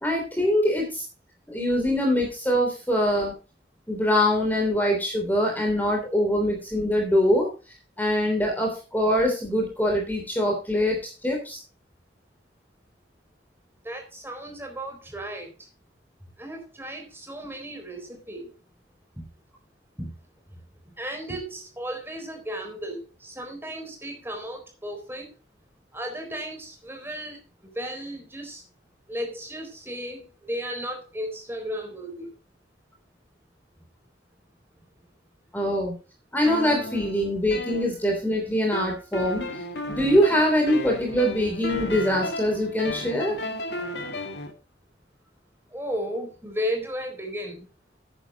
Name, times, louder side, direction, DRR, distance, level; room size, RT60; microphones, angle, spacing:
voice 1, 0.0-1.0 1.5-3.3 3.9-7.5 8.0-11.0 11.2-11.6 35.5-35.9 36.3-39.4 39.9-43.4, equal, 10° left, 1 dB, 3.2 m, -23 dB
voice 2, 13.8-15.7 16.4-18.5 19.2-19.3 20.0-20.1 21.0-25.3 25.9-28.6 29.1-32.3 45.7-47.6, equal, 15° right, 3 dB, 4.2 m, -34 dB
sound 1, 36.5-38.3 38.7-44.5, left 1 dB, 75° left, 2.3 m, -34 dB
14.0 x 9.9 x 2.9 m, 0.33 s
head